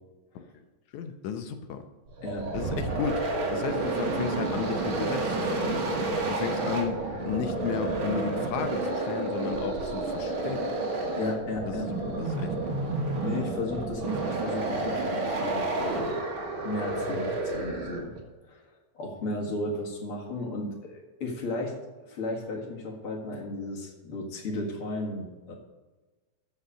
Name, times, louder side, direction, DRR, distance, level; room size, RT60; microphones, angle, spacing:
voice 1, 0.9-1.9 2.5-10.7 11.7-13.0, left 8 dB, 80° left, 8 dB, 2.2 m, -34 dB
sound 1, 2.1-18.2, right 2 dB, 50° right, 2.2 m, -30 dB
voice 2, 11.2-11.9 13.2-16.1 16.6-18.1 18.5-18.6 18.9-21.7 22.0-25.6, left 2 dB, 50° left, -1 dB, 2.6 m, -34 dB
13.5 x 5.8 x 5.1 m, 1.3 s
omnidirectional pair, 3.4 m